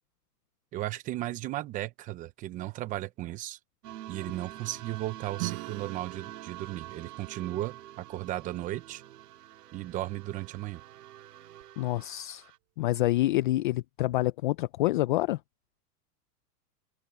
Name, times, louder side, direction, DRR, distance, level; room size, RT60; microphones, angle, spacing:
voice 1, 0.7-3.6 4.1-9.0 9.7-10.8, right 15 dB, 15° right, 0.6 m, -35 dB
sound 1, 3.8-12.6, right 14 dB, 75° right, 2.2 m, -47 dB
Acoustic guitar / Strum, 5.4-9.7, right 29 dB, 45° right, 5.2 m, -44 dB
voice 2, 11.8-12.4 12.8-15.4, left 16 dB, 35° left, 0.5 m, -27 dB
hypercardioid pair, 150°, 47 cm